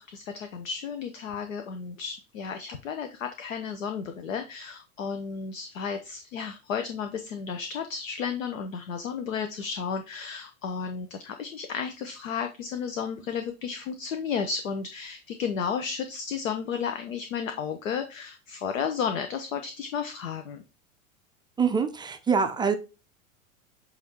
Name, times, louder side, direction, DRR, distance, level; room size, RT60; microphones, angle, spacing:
voice 1, 0.0-20.6, left 6 dB, 70° left, 7 dB, 0.9 m, -33 dB
voice 2, 21.6-22.7, right 6 dB, 10° right, 6 dB, 0.4 m, -25 dB
8.0 x 2.7 x 4.4 m, 0.30 s
figure-of-eight pair, 90°, 41 cm